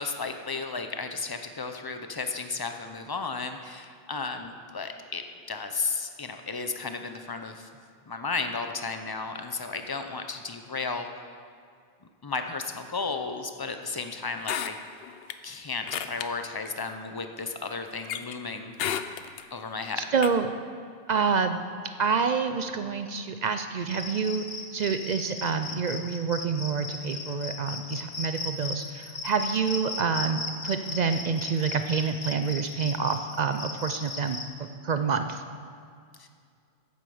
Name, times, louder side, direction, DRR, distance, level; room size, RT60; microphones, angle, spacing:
voice 1, 0.0-5.2 5.5-7.7 8.1-11.1 12.2-14.8 15.4-18.8 19.5-20.1 36.2-36.3, left 4 dB, 25° left, 7 dB, 0.5 m, -34 dB
sound 1, 14.4-15.3 15.9-16.3 16.7-16.8 18.1-18.4 18.8-19.4 20.2-20.3, left 9 dB, 70° left, 0.8 m, -31 dB
voice 2, 20.0-20.5 21.1-21.6 22.0-24.5 24.7-34.4 34.8-35.4, right 5 dB, 55° right, 8 dB, 0.5 m, -27 dB
Cricket, 23.8-34.4, left 3 dB, 45° left, 1.0 m, -37 dB
9.3 x 8.2 x 7.0 m, 2.2 s
omnidirectional pair, 1.1 m